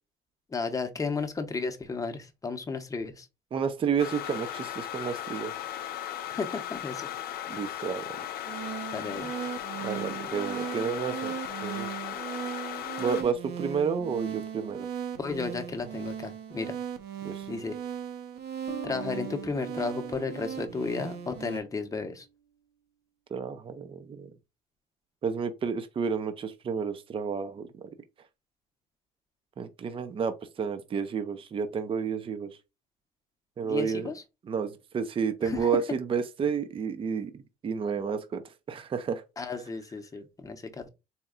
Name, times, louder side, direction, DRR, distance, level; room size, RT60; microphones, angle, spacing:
voice 1, 0.5-3.3 6.3-7.1 8.9-9.3 15.2-16.7 17.5-17.8 18.8-22.3 33.6-34.2 35.4-35.7 39.4-40.9, left 4 dB, 20° left, 0.8 m, -33 dB
voice 2, 3.5-5.5 7.5-8.0 9.8-11.9 13.0-14.9 17.2-17.5 23.3-24.3 25.2-27.8 29.6-32.5 33.6-34.1 34.5-38.4 38.7-39.2, right 6 dB, 30° right, 0.5 m, -31 dB
sound 1, 4.0-13.2, left 11 dB, 65° left, 0.6 m, -37 dB
sound 2, 8.5-21.6, right 8 dB, 70° right, 0.9 m, -38 dB
sound 3, 18.7-22.0, right 4 dB, 50° right, 1.2 m, -44 dB
4.2 x 2.2 x 3.7 m
cardioid pair, 110°, 17 cm